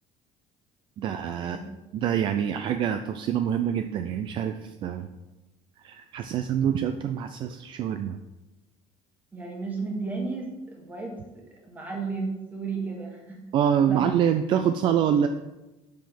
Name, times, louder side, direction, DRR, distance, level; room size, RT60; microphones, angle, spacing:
voice 1, 1.0-1.6 1.9-5.1 5.8-8.2 13.5-15.3, right 9 dB, 45° right, 8 dB, 0.4 m, -25 dB
voice 2, 9.3-13.4 13.9-14.1, right 4 dB, 15° right, 0 dB, 1.5 m, -34 dB
7.1 x 4.8 x 5.8 m, 1.0 s
cardioid pair, 165°, 12 cm